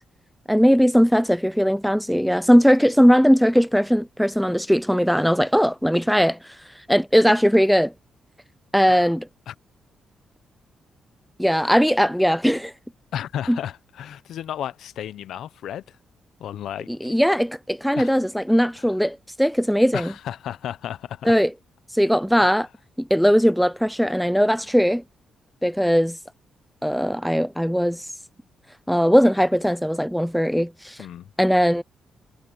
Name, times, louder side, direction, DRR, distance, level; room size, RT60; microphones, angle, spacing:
voice 1, 0.5-6.6 6.9-7.9 8.7-9.3 11.4-12.7 13.5-13.6 16.9-20.1 21.2-21.5 21.9-22.7 23.0-25.0 25.6-26.2 26.8-28.1 28.9-31.0 31.4-31.8, equal, ahead, 0.3 m, -19 dB
voice 2, 13.1-16.0 16.4-16.9 17.9-18.2 18.8-18.9 19.9-21.3 22.4-22.5 31.0-31.3, left 10 dB, 75° left, 0.7 m, -33 dB
wide cardioid pair, 165°, 0 cm